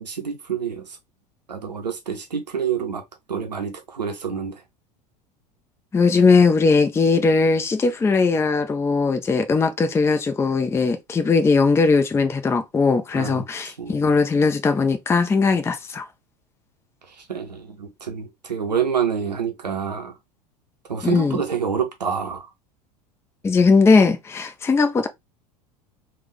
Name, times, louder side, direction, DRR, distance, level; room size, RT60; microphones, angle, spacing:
voice 1, 0.0-0.8 1.5-3.0 3.3-4.6 13.1-13.4 13.8-14.0 17.3-20.1 20.9-22.5, right 7 dB, 90° right, 0.6 m, -27 dB
voice 2, 5.9-16.0 21.0-21.4 23.4-25.1, left 4 dB, 10° left, 0.5 m, -19 dB
3.4 x 2.2 x 3.1 m
figure-of-eight pair, 80°, 21 cm